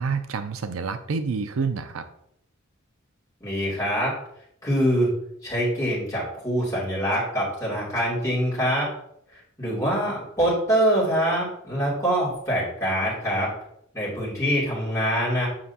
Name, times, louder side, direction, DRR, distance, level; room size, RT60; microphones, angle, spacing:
voice 1, 0.0-2.1, right 5 dB, 75° right, 10 dB, 0.5 m, -28 dB
voice 2, 3.4-4.2 4.6-5.1 5.4-8.9 9.6-13.5 13.9-15.5, equal, 15° left, -7 dB, 2.9 m, -24 dB
7.4 x 6.0 x 2.8 m, 0.73 s
head